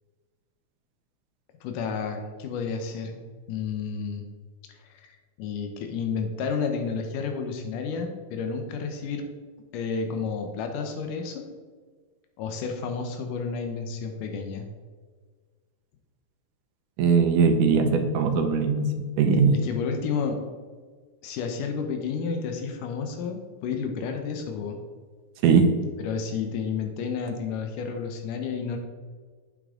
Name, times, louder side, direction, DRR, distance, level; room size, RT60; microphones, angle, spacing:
voice 1, 1.6-3.2 3.5-4.2 4.7-5.1 5.4-9.2 9.7-11.5 12.4-14.7 19.6-20.4 21.2-24.8 26.0-28.8, left 5 dB, 90° left, 4 dB, 2.5 m, -31 dB
voice 2, 17.0-18.9 19.2-19.6 25.4-25.7, right 5 dB, 80° right, 6 dB, 2.3 m, -20 dB
8.6 x 8.5 x 3.7 m, 1.5 s
omnidirectional pair, 3.7 m